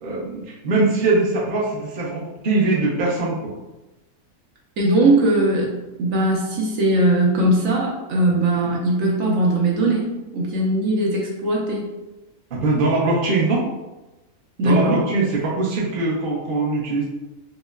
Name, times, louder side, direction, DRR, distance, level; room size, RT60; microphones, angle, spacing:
voice 1, 0.0-3.5 12.5-13.7 14.6-17.1, right 3 dB, 45° right, -4 dB, 0.8 m, -22 dB
voice 2, 4.8-5.7 6.0-10.0 10.3-11.9 14.6-15.0, right 1 dB, 75° right, -2 dB, 1.2 m, -19 dB
5.2 x 2.1 x 2.3 m, 1.0 s
omnidirectional pair, 1.4 m